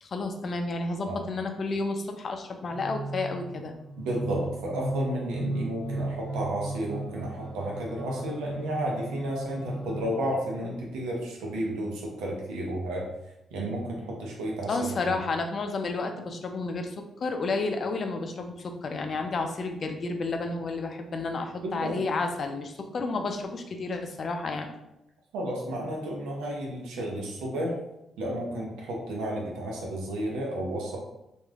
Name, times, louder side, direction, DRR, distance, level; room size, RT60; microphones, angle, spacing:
voice 1, 0.0-3.8 14.7-24.7, left 3 dB, 55° left, 5 dB, 0.4 m, -31 dB
sound 1, 2.7-10.6, right 2 dB, 30° right, 1.1 m, -36 dB
voice 2, 4.0-13.1 13.5-15.1 21.6-22.1 25.3-27.8 28.2-31.0, right 1 dB, 90° right, -2 dB, 0.7 m, -32 dB
3.2 x 2.5 x 2.3 m, 0.88 s
supercardioid pair, 60°, 0 cm